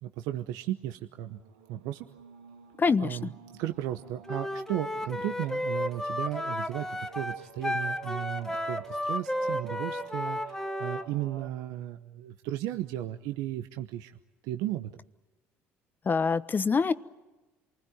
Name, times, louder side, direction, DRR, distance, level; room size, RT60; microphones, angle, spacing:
voice 1, 0.0-1.4 1.7-2.1 3.0-3.3 3.6-14.2 14.4-15.0, right 13 dB, 70° right, 8 dB, 0.9 m, -35 dB
sound 1, 1.2-11.5, right 8 dB, 85° right, 1.7 m, -49 dB
voice 2, 2.8-3.2 16.0-16.9, left 5 dB, 30° left, 13 dB, 1.2 m, -25 dB
Wind instrument woodwind instrument, 4.3-11.1, left 1 dB, 5° left, 1.5 m, -33 dB
27.5 x 20.0 x 9.2 m, 1.1 s
hypercardioid pair, 65°, 6 cm